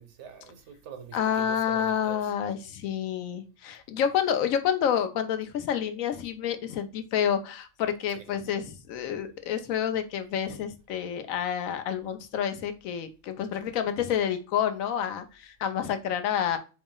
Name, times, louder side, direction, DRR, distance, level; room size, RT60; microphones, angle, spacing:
voice 1, 0.0-2.3, right 7 dB, 65° right, 0.9 m, -44 dB
voice 2, 1.1-16.6, left 9 dB, 90° left, 1.0 m, -29 dB
4.6 x 2.0 x 3.7 m
omnidirectional pair, 1.4 m